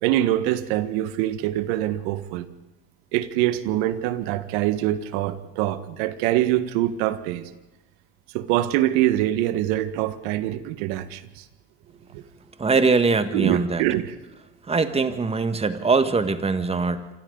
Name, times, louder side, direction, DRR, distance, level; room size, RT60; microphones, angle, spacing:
voice 1, 0.0-2.5 3.1-7.5 8.3-11.4 12.1-12.2 13.3-14.1, right 13 dB, 70° right, 1.7 m, -24 dB
voice 2, 12.6-13.8 14.7-17.1, right 4 dB, 20° right, 1.7 m, -22 dB
27.5 x 26.0 x 4.0 m
supercardioid pair, 95°, 34 cm